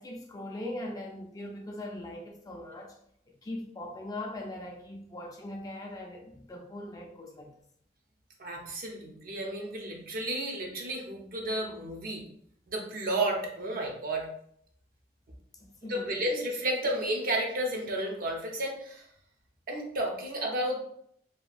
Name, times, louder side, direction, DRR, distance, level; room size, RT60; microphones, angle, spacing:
voice 1, 0.0-3.0 3.4-7.5 15.6-16.3, left 1 dB, 20° left, 0.3 m, -40 dB
voice 2, 8.4-12.2 12.7-14.3 15.9-19.1 19.7-20.8, right 1 dB, 55° right, 0.6 m, -32 dB
2.7 x 2.2 x 2.4 m
head